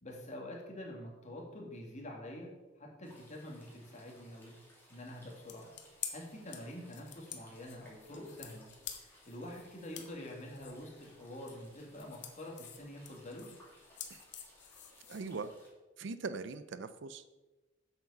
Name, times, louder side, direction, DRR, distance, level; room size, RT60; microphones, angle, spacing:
voice 1, 0.0-2.5 2.8-4.6 4.9-5.7 6.1-8.7 9.3-13.5, left 1 dB, 40° left, -1 dB, 2.2 m, -46 dB
sound 1, 3.0-15.7, left 1 dB, 10° left, 2.6 m, -62 dB
sound 2, 5.3-15.5, left 9 dB, 65° left, 1.1 m, -50 dB
voice 2, 15.1-15.5 16.0-17.4, right 4 dB, 65° right, 13 dB, 0.5 m, -41 dB
7.8 x 7.2 x 5.4 m, 1.1 s
head